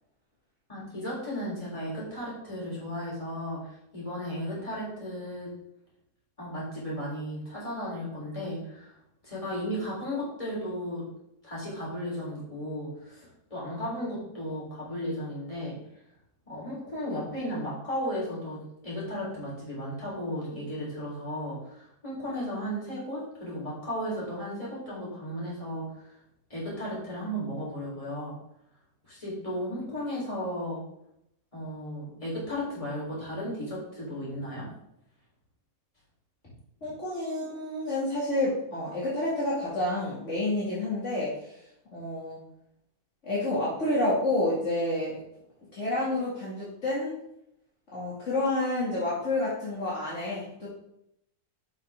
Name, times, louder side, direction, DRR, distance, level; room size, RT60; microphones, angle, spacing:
voice 1, 0.7-5.5 6.4-9.0 9.2-11.1 11.4-15.8 16.5-26.1 26.5-28.4 29.0-30.8 31.5-34.7, equal, 20° left, -6 dB, 3.9 m, -35 dB
voice 2, 36.8-41.6 41.9-42.4 43.2-45.2 45.7-47.1 47.9-50.7, left 1 dB, 50° left, -7 dB, 2.5 m, -29 dB
10.5 x 5.8 x 3.6 m, 0.78 s
omnidirectional pair, 1.6 m